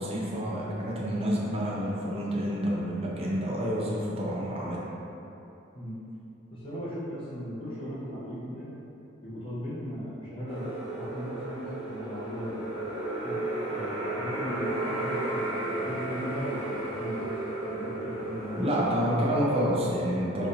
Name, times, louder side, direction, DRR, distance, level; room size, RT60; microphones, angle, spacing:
voice 1, 0.0-4.8 18.6-20.5, equal, 30° right, -5 dB, 0.5 m, -28 dB
voice 2, 6.5-8.7 9.2-10.7 10.9-12.7 13.2-13.4 13.7-17.3 17.7-18.6, equal, 25° left, -10 dB, 0.9 m, -37 dB
sound 1, 10.5-19.8, right 2 dB, ahead, 1.2 m, -34 dB
4.0 x 2.6 x 2.7 m, 2.9 s
head